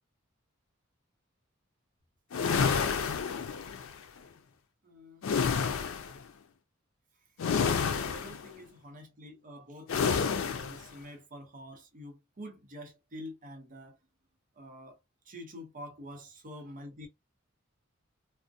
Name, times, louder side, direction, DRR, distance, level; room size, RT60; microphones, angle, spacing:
sound 1, 2.3-3.9 5.2-6.2 7.4-8.5 9.9-10.8, left 6 dB, 85° left, 0.4 m, -29 dB
voice 1, 4.8-5.3 8.1-14.0 14.6-15.0 15.3-17.1, equal, 40° right, 0.6 m, -47 dB
2.5 x 2.0 x 2.6 m
head